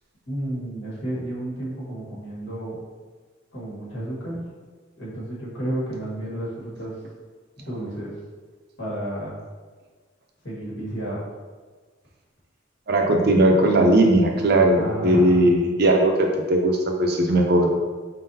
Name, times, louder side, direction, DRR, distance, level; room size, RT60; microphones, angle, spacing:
voice 1, 0.3-2.8 3.5-4.4 5.0-7.0 7.6-8.2 8.8-9.4 10.4-11.3 14.7-15.5, right 1 dB, 70° left, -6 dB, 1.4 m, -32 dB
voice 2, 12.9-17.7, right 1 dB, 55° right, 2 dB, 0.6 m, -18 dB
4.2 x 3.8 x 2.7 m, 1.4 s
head